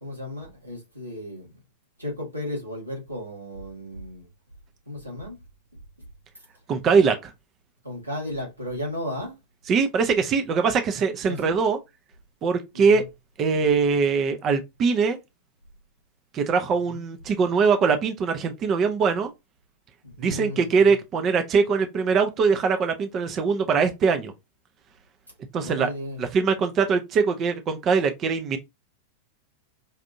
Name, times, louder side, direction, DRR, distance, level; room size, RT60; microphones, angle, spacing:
voice 1, 0.0-1.5 2.0-4.3 4.8-5.4 7.8-9.4 11.3-11.6 12.7-13.0 16.8-17.0 20.0-20.9 25.6-26.2, left 1 dB, 85° right, 1.7 m, -34 dB
voice 2, 6.7-7.3 9.7-11.8 12.4-13.0 13.4-15.2 16.3-19.3 20.2-24.3 25.5-25.9 26.2-28.6, right 5 dB, 30° right, 0.5 m, -22 dB
5.3 x 2.5 x 2.6 m
figure-of-eight pair, 90°, 0 cm